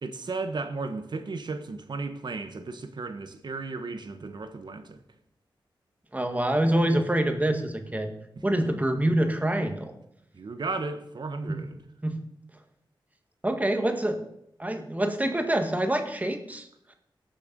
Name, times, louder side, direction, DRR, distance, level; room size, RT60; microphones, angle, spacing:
voice 1, 0.0-5.0 10.3-11.8, right 3 dB, 60° right, 1.4 m, -34 dB
voice 2, 6.1-8.1 8.4-9.9 11.5-11.6 12.0-12.1 13.4-14.2 14.6-16.7, right 1 dB, 20° right, 1.8 m, -26 dB
18.0 x 6.8 x 5.4 m
wide cardioid pair, 75°, 8 cm